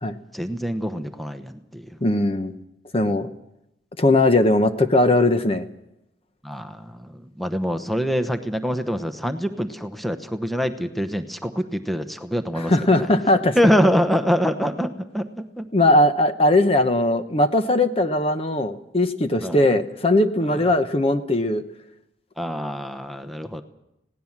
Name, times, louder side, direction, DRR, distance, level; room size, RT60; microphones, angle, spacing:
voice 1, 0.3-2.0 6.4-12.7 13.5-15.7 19.4-19.6 22.4-23.6, equal, ahead, 7 dB, 1.0 m, -25 dB
voice 2, 2.0-2.5 2.9-3.3 4.0-5.7 12.6-13.6 15.7-21.6, left 1 dB, 30° left, 9 dB, 0.9 m, -19 dB
20.5 x 17.5 x 7.4 m, 0.86 s
head